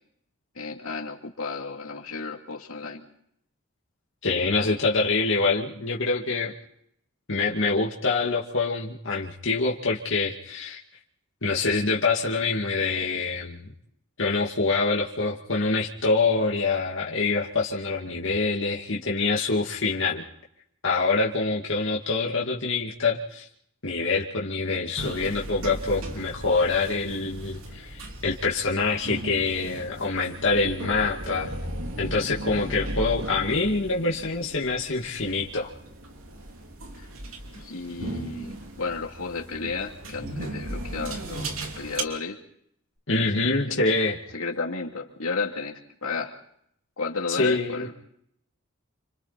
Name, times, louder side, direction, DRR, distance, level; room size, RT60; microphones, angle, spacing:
voice 1, 0.5-3.0 37.0-37.1 37.6-38.5 38.8-42.4 43.7-43.9 44.3-46.4 47.0-47.9, left 4 dB, 75° left, 1 dB, 2.8 m, -32 dB
voice 2, 4.2-6.5 7.3-10.8 11.4-13.6 14.2-20.2 20.8-23.5 23.8-31.5 32.0-35.7 43.1-44.2 47.4-47.9, left 3 dB, 60° left, -3 dB, 2.4 m, -25 dB
sound 1, 25.0-42.0, right 1 dB, 75° right, 2.9 m, -37 dB
29.0 x 26.0 x 4.2 m, 0.71 s
head